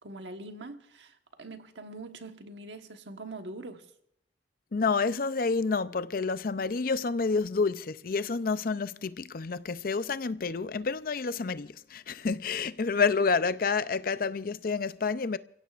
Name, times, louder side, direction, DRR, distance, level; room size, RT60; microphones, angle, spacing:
voice 1, 0.0-3.8, right 2 dB, 90° right, 1.3 m, -43 dB
voice 2, 4.7-15.4, left 4 dB, 50° left, 0.5 m, -29 dB
28.5 x 16.0 x 2.5 m
head